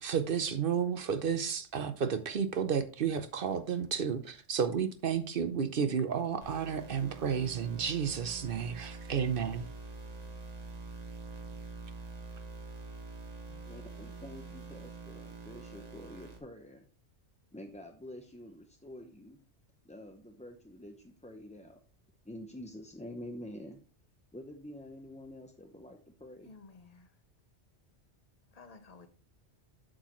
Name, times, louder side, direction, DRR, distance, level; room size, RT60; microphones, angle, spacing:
voice 1, 0.0-9.7, right 7 dB, 55° right, 0.8 m, -32 dB
sound 1, 6.4-16.4, right 3 dB, 35° right, 1.4 m, -45 dB
voice 2, 13.6-16.9 17.5-19.4 19.8-21.8 22.2-23.8 24.3-26.5, left 1 dB, 10° left, 0.4 m, -47 dB
voice 3, 26.4-27.1 28.5-29.1, left 4 dB, 40° left, 0.9 m, -54 dB
7.8 x 6.3 x 3.1 m
omnidirectional pair, 1.1 m